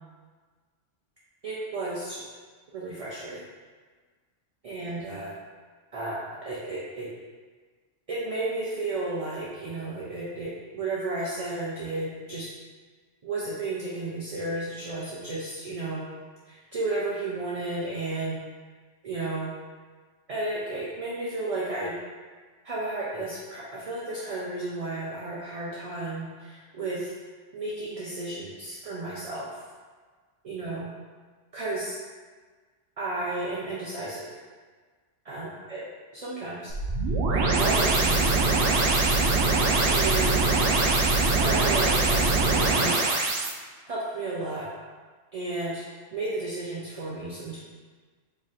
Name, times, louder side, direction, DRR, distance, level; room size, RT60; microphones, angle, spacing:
voice 1, 1.4-2.3 2.7-3.4 4.6-5.3 5.9-7.1 8.1-12.5 13.2-16.0 16.5-18.4 19.0-19.5 20.3-21.9 22.6-27.1 27.5-29.6 30.4-30.9 31.5-31.9 33.0-34.4 35.2-35.8 36.1-36.7 37.3-38.5 39.9-40.6 41.3-43.1 43.9-44.7 45.3-47.6, right 2 dB, 50° right, -6 dB, 0.4 m, -33 dB
sound 1, 36.7-43.5, right 3 dB, 70° right, 0.8 m, -23 dB
3.1 x 2.5 x 4.0 m, 1.5 s
omnidirectional pair, 1.2 m